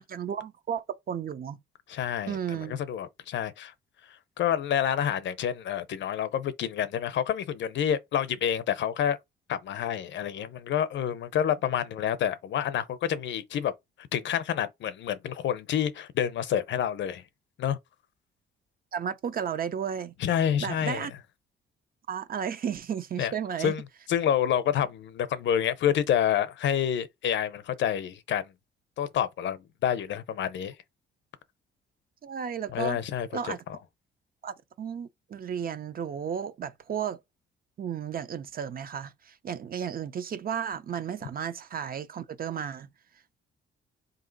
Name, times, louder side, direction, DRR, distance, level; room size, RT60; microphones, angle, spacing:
voice 1, 0.0-1.6 2.3-2.8 18.9-20.1 20.6-21.1 22.1-23.8 32.2-33.0 33.3-33.6 34.4-37.2 37.8-42.9, right 8 dB, 45° right, 0.6 m, -33 dB
voice 2, 1.9-3.7 4.4-9.2 9.5-13.7 14.1-17.2 17.6-17.8 20.2-21.1 23.2-23.3 23.6-23.8 24.1-28.5 29.0-30.7 32.7-33.8, left 9 dB, 65° left, 0.6 m, -28 dB
3.6 x 2.8 x 3.9 m
cardioid pair, 90°, 20 cm